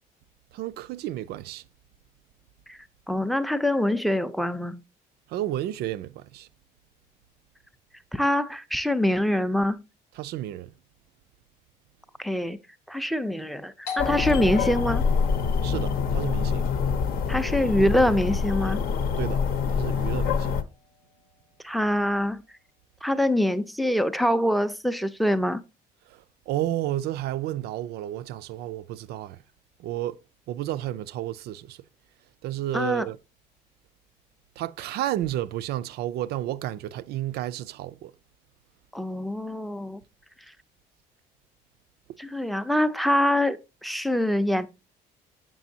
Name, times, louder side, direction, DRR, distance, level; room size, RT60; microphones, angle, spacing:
voice 1, 0.5-1.6 5.3-6.5 10.2-10.7 15.6-16.7 19.2-19.4 19.7-20.5 26.5-29.4 29.8-30.2 30.5-31.8 32.4-33.2 34.6-38.1, right 13 dB, 70° right, 0.4 m, -31 dB
voice 2, 3.1-4.8 8.1-9.8 12.2-12.6 12.9-15.0 17.3-18.8 21.6-22.4 23.0-25.6 32.7-33.1 38.9-40.0 42.2-44.7, left 1 dB, ahead, 0.4 m, -24 dB
Doorbell, 13.9-19.3, left 6 dB, 85° left, 0.9 m, -40 dB
sound 1, 14.0-20.6, left 6 dB, 60° left, 0.7 m, -26 dB
7.5 x 6.1 x 2.7 m
cardioid pair, 110°, 17 cm